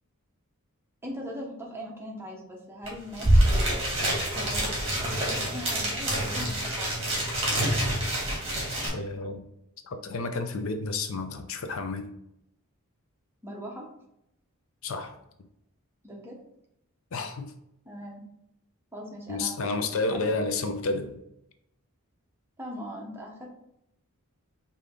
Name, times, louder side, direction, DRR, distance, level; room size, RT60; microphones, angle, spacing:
voice 1, 1.0-7.1 13.4-13.9 16.0-16.4 17.8-18.2 18.9-19.9 20.3-20.4 22.6-23.5, equal, 10° right, -2 dB, 0.9 m, -40 dB
sound 1, 2.9-3.0 3.1-8.9, right 1 dB, 25° right, 1.7 m, -26 dB
voice 2, 8.9-9.4 9.8-12.1 14.8-15.2 17.1-17.5 19.3-21.2, left 3 dB, 60° left, 7 dB, 0.5 m, -31 dB
5.0 x 2.8 x 3.7 m, 0.80 s
head